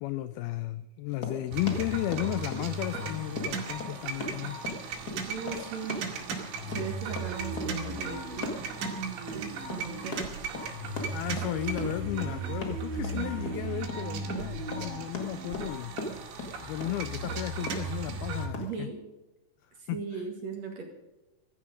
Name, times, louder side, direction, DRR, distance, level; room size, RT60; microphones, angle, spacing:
voice 1, 0.0-4.6 11.1-16.0 16.6-18.9 19.9-20.2, left 15 dB, 85° left, 13 dB, 2.2 m, -34 dB
Run, 1.1-18.7, left 2 dB, 45° left, 1.2 m, -40 dB
sound 1, 1.5-18.5, right 4 dB, 85° right, 4.4 m, -36 dB
voice 2, 5.3-6.0 6.7-8.6 9.3-10.3 18.6-19.0 19.8-20.8, right 5 dB, 50° right, 2 dB, 2.5 m, -38 dB
16.0 x 13.5 x 5.1 m, 1.0 s
omnidirectional pair, 5.0 m